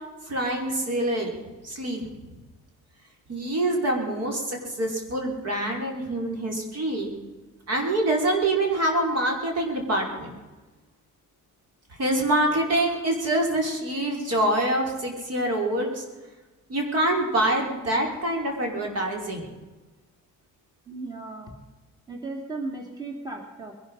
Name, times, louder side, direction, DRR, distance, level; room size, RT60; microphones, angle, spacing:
voice 1, 0.3-1.3 1.6-2.1 3.3-7.1 7.7-10.3 12.0-16.0 16.7-19.4, right 1 dB, 55° right, 1 dB, 5.1 m, -25 dB
voice 2, 20.9-21.5 22.1-23.7, right 3 dB, 15° right, 1 dB, 2.8 m, -36 dB
22.0 x 11.5 x 5.6 m, 1.2 s
cardioid pair, 90°, 30 cm